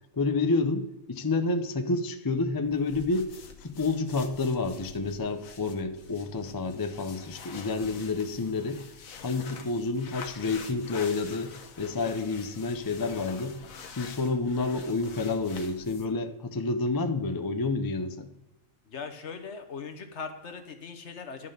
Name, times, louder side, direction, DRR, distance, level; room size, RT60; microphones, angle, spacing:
voice 1, 0.1-3.3 3.6-8.8 9.2-13.6 14.0-18.3, left 3 dB, 30° left, 7 dB, 0.4 m, -29 dB
sound 1, 2.6-16.2, left 6 dB, 75° left, 1.4 m, -46 dB
voice 2, 18.9-21.5, left 5 dB, 55° left, 7 dB, 1.3 m, -40 dB
11.5 x 5.6 x 6.7 m, 0.96 s
omnidirectional pair, 1.4 m